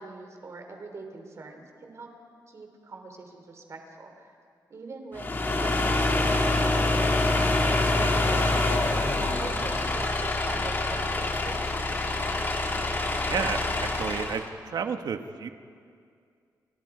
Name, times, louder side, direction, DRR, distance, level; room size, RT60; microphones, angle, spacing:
voice 1, 0.0-2.1 2.5-4.3 4.7-6.8 8.5-11.8, right 3 dB, 45° right, 4 dB, 3.2 m, -43 dB
sound 1, 5.1-14.5, left 2 dB, 30° left, 2.0 m, -26 dB
voice 2, 7.6-8.1 13.2-15.5, right 6 dB, 70° right, 7 dB, 1.3 m, -32 dB
28.5 x 28.0 x 5.0 m, 2.3 s
wide cardioid pair, 175°, 7 cm